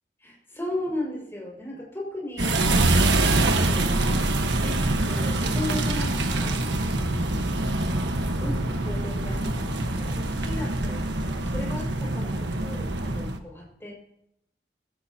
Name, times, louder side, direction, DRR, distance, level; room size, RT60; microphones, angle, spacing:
voice 1, 0.2-4.3 4.6-6.6 7.0-7.5 8.2-13.9, left 1 dB, 15° left, -2 dB, 5.8 m, -36 dB
sound 1, 2.4-13.4, right 2 dB, 80° right, 1.4 m, -25 dB
21.5 x 16.0 x 2.9 m, 0.78 s
head